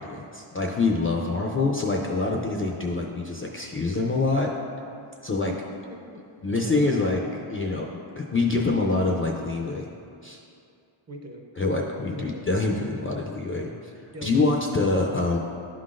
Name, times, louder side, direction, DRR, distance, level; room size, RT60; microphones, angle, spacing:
voice 1, 0.0-4.5 5.2-5.5 6.4-7.2 7.5-9.9 10.2-10.4 11.6-13.7 14.2-15.4, left 3 dB, 30° left, 0 dB, 0.4 m, -25 dB
voice 2, 5.5-6.2 6.6-6.8 11.1-11.5 11.7-11.9 12.1-12.5 14.1-14.5, right 1 dB, 35° right, 2 dB, 0.6 m, -42 dB
11.0 x 3.8 x 2.4 m, 2.4 s
wide cardioid pair, 120°, 50 cm